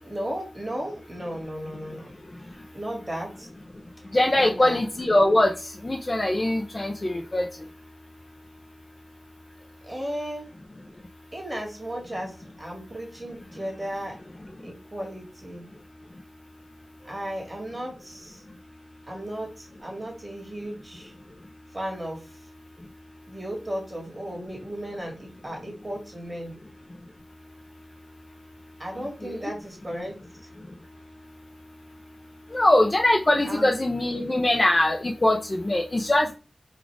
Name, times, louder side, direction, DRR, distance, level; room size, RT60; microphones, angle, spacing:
voice 1, 0.0-2.1 2.7-3.5 4.3-4.8 9.8-10.4 11.3-14.2 14.6-15.7 17.0-18.4 19.1-21.1 21.7-22.2 23.3-26.5 28.8-30.2 33.4-33.7, equal, 20° right, -1 dB, 1.9 m, -35 dB
voice 2, 4.1-5.5 5.8-7.5 29.2-29.4 32.5-36.4, left 1 dB, 30° left, 3 dB, 0.5 m, -22 dB
4.1 x 2.4 x 4.5 m, 0.33 s
wide cardioid pair, 90°, 0 cm